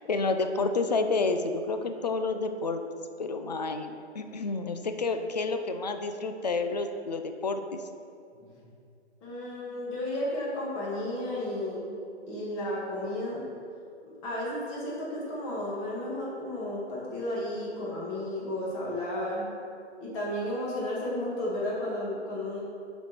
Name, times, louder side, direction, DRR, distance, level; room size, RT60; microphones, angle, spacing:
voice 1, 0.0-2.8 3.2-7.6, left 3 dB, 40° left, 7 dB, 0.5 m, -29 dB
voice 2, 9.2-11.8 12.3-13.5 14.2-19.5 20.0-22.6, left 1 dB, 15° left, -5 dB, 1.5 m, -33 dB
7.0 x 5.1 x 5.6 m, 2.4 s
hypercardioid pair, 165°, 35 cm